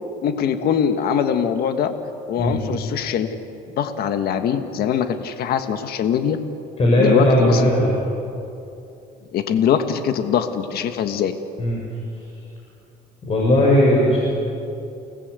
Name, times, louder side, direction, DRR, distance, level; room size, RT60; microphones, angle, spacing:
voice 1, 0.2-1.9 2.3-3.4 3.8-6.4 7.0-7.7 9.3-11.3, left 8 dB, 65° left, 8 dB, 1.5 m, -22 dB
voice 2, 6.8-7.9 11.6-11.8 13.2-14.2, left 1 dB, 35° left, -3 dB, 6.3 m, -17 dB
30.0 x 19.0 x 8.2 m, 2.7 s
cardioid pair, 110°, 17 cm